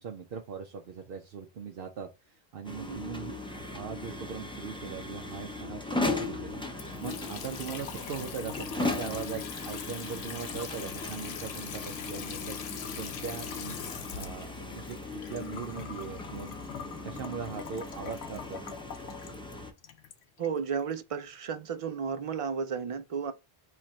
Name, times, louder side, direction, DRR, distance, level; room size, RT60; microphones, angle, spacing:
voice 1, 0.0-12.6 13.0-13.7 14.1-15.0 15.2-16.5 17.0-18.6, right 6 dB, 65° right, 0.8 m, -40 dB
sound 1, 2.6-19.7, left 2 dB, 5° left, 0.5 m, -38 dB
Water tap faucet / Sink (filling or washing) / Trickle dribble, 6.7-20.8, left 7 dB, 90° left, 0.9 m, -42 dB
voice 2, 20.4-23.3, right 6 dB, 50° right, 0.4 m, -33 dB
4.6 x 2.4 x 4.2 m
omnidirectional pair, 1.0 m